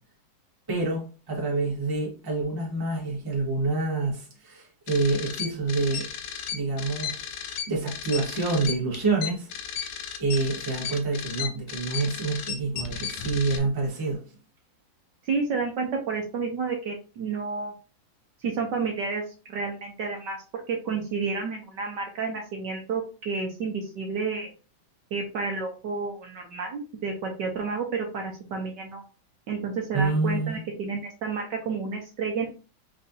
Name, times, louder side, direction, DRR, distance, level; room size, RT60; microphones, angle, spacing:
voice 1, 0.7-6.1 6.5-7.3 7.7-9.5 10.2-14.2 29.9-30.6, right 3 dB, 15° right, 0.9 m, -27 dB
sound 1, 4.9-13.6, left 8 dB, 70° left, 1.1 m, -34 dB
voice 2, 15.2-17.7 18.4-24.5 25.1-29.0 29.5-32.5, right 4 dB, 65° right, 1.2 m, -30 dB
4.3 x 3.7 x 2.6 m
omnidirectional pair, 2.3 m